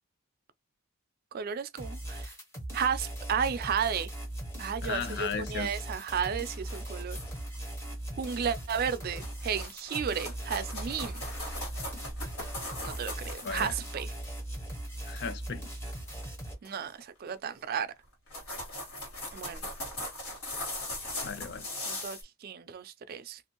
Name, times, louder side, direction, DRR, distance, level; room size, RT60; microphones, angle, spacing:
voice 1, 1.3-2.3 2.7-4.1 4.6-7.2 8.2-11.2 12.8-14.1 16.6-17.9 19.3-19.7 21.9-23.4, right 7 dB, 45° right, 0.3 m, -33 dB
sound 1, 1.8-16.5, right 1 dB, 10° left, 0.8 m, -39 dB
voice 2, 4.8-5.7 13.4-13.7 15.1-15.6 21.2-21.7, left 6 dB, 50° left, 0.3 m, -35 dB
sound 2, 6.5-7.6 8.2-8.6 9.0-14.1 16.1-16.3 16.6-17.0 17.8-17.9 18.1-22.2, left 1 dB, 90° left, 1.7 m, -40 dB
2.6 x 2.4 x 2.8 m
head